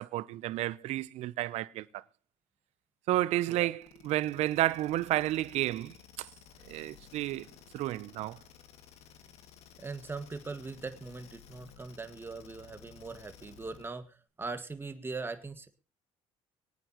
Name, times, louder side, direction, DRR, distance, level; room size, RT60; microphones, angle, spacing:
voice 1, 0.0-2.0 3.1-6.3 6.6-7.5 7.7-8.4, right 15 dB, 70° right, 0.7 m, -31 dB
sound 1, 3.8-14.0, left 8 dB, 65° left, 2.2 m, -55 dB
voice 2, 9.8-15.7, right 3 dB, 20° right, 1.8 m, -41 dB
23.5 x 9.3 x 3.0 m
cardioid pair, 105°, 12 cm